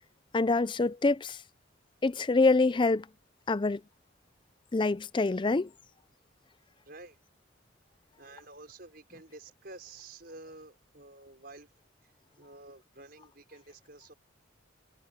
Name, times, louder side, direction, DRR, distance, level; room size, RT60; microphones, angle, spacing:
voice 1, 0.3-1.4 2.0-3.0 3.5-3.8 4.7-5.7, left 3 dB, 25° left, 0.4 m, -25 dB
voice 2, 6.8-7.2 8.2-11.7 12.4-14.1, right 2 dB, 50° right, 5.9 m, -50 dB
head